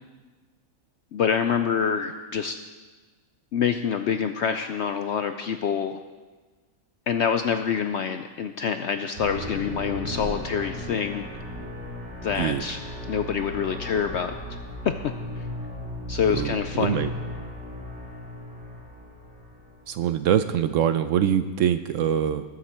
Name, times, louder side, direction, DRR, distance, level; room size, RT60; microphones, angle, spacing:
voice 1, 1.1-2.6 3.5-6.0 7.1-11.3 12.2-12.8 13.1-14.3 14.8-15.1 16.1-17.0, left 7 dB, 70° left, 8 dB, 0.6 m, -26 dB
sound 1, 9.2-20.4, left 1 dB, 45° right, 3.2 m, -36 dB
voice 2, 16.3-17.1 19.9-22.4, right 9 dB, 70° right, 11 dB, 0.8 m, -24 dB
20.5 x 8.0 x 4.4 m, 1.3 s
omnidirectional pair, 1.6 m